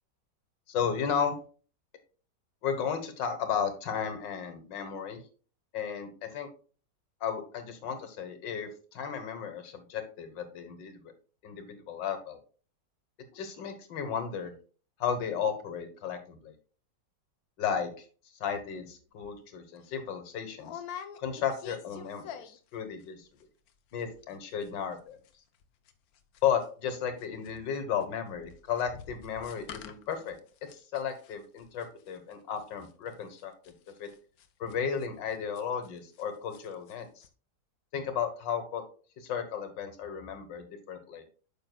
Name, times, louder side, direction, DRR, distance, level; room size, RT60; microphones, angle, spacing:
voice 1, 0.7-1.4 2.6-5.2 5.7-6.5 7.2-11.1 11.4-12.4 13.3-14.5 15.0-16.5 17.6-18.1 18.4-20.8 21.2-23.3 23.9-25.2 26.4-30.4 30.7-33.5 34.0-34.1 34.6-37.3 37.9-38.8 39.2-41.2, left 7 dB, 85° left, 9 dB, 1.8 m, -34 dB
sound 1, 19.2-19.4 19.8-19.9 20.6-22.8 23.0-23.4 23.7-23.8 24.0-24.4 24.6-26.9 27.2-36.2 36.5-37.0 37.2-37.3, left 8 dB, 65° left, 1.1 m, -47 dB
9.1 x 6.4 x 2.2 m, 0.39 s
omnidirectional pair, 1.9 m